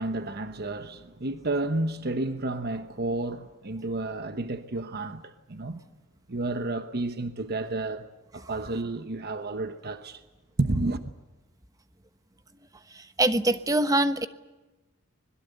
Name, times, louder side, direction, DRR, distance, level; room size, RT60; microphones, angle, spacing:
voice 1, 0.0-5.8 6.3-8.1 8.3-10.2 10.6-11.1, right 2 dB, 45° right, 1.1 m, -31 dB
voice 2, 12.9-14.3, right 1 dB, 15° right, 1.1 m, -24 dB
25.5 x 21.5 x 8.1 m
head